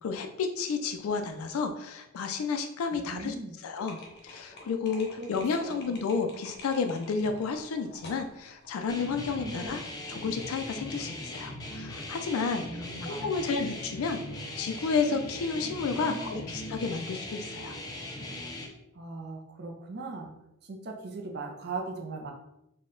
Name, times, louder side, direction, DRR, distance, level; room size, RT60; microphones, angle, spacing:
voice 1, 0.0-4.0 4.2-9.8 10.1-14.2 14.6-17.8, left 5 dB, 85° left, 6 dB, 0.4 m, -31 dB
voice 2, 2.9-3.5 5.2-5.3 5.6-5.8 9.4-9.8 12.6-13.6 16.0-16.5 18.9-20.3 20.6-22.3, right 3 dB, 50° right, 1 dB, 0.5 m, -39 dB
sound 1, 3.8-10.7, left 2 dB, 50° left, 0.7 m, -50 dB
sound 2, 8.9-18.7, left 1 dB, 20° left, 0.4 m, -39 dB
4.0 x 2.2 x 3.7 m, 0.84 s
head